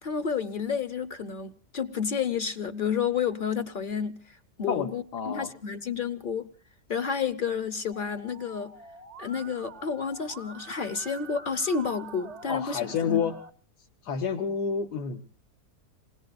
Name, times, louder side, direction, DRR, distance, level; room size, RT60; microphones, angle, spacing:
voice 1, 0.0-6.5 6.9-8.7 9.2-13.3, left 6 dB, 40° left, 12 dB, 0.8 m, -30 dB
voice 2, 4.7-5.5 12.5-13.4 14.0-15.2, left 6 dB, 75° left, 3 dB, 1.7 m, -29 dB
Musical instrument, 7.9-13.5, right 4 dB, 40° right, 0.6 m, -46 dB
28.0 x 20.5 x 2.5 m, 0.44 s
omnidirectional pair, 1.8 m